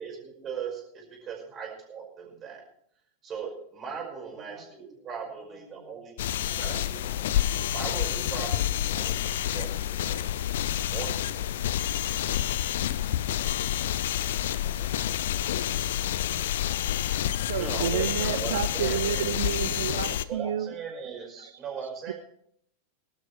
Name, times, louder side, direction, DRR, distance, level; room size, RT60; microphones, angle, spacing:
voice 1, 0.0-2.6 3.2-7.1 7.7-9.2 9.5-10.4 10.9-11.5 17.6-19.5 20.3-22.1, right 6 dB, 30° right, 0 dB, 5.4 m, -39 dB
voice 2, 4.3-4.6 5.2-6.0 9.5-9.7, equal, 10° left, -3 dB, 6.0 m, -54 dB
sound 1, 6.2-20.2, left 12 dB, 55° left, 0.5 m, -28 dB
voice 3, 17.5-20.7 21.4-21.5 22.1-22.2, right 10 dB, 60° right, 13 dB, 0.4 m, -30 dB
21.0 x 12.0 x 3.3 m, 0.68 s
figure-of-eight pair, 90°, 0 cm